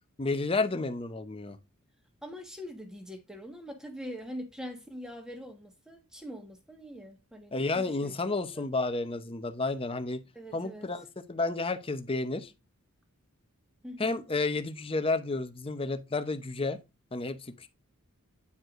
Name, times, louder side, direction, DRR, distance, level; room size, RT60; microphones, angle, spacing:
voice 1, 0.2-1.6 7.5-10.2 10.5-12.5 14.0-16.8 17.1-17.7, left 3 dB, 25° left, 0.7 m, -31 dB
voice 2, 2.2-8.7 10.3-10.9 13.8-14.2, equal, 5° right, 1.3 m, -43 dB
9.5 x 4.7 x 2.5 m
head